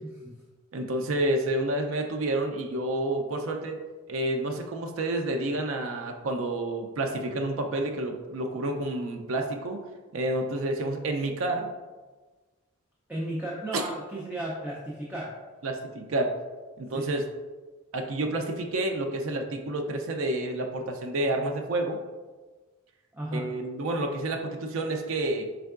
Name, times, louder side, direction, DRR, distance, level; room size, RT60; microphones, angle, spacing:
voice 1, 0.0-0.4 13.1-15.4 16.9-17.1 23.1-23.5, right 1 dB, 10° right, -5 dB, 0.4 m, -34 dB
voice 2, 0.7-3.8 4.1-9.8 10.1-11.7 13.7-13.8 15.6-16.3 16.8-17.3 17.9-22.0 23.3-25.5, right 1 dB, 65° right, 3 dB, 0.4 m, -29 dB
4.4 x 3.4 x 2.4 m, 1.3 s
head